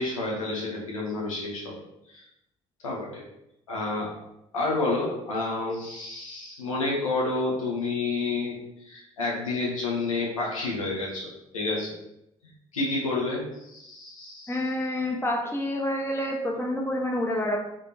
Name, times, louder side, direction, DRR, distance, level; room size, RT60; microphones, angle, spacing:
voice 1, 0.0-1.8 2.1-2.2 2.8-3.2 3.7-4.1 4.5-12.0 12.7-14.6, left 3 dB, 85° left, -4 dB, 0.9 m, -29 dB
voice 2, 14.5-17.6, left 1 dB, 15° left, -1 dB, 1.2 m, -28 dB
3.5 x 3.3 x 4.1 m, 0.82 s
figure-of-eight pair, 45°, 17 cm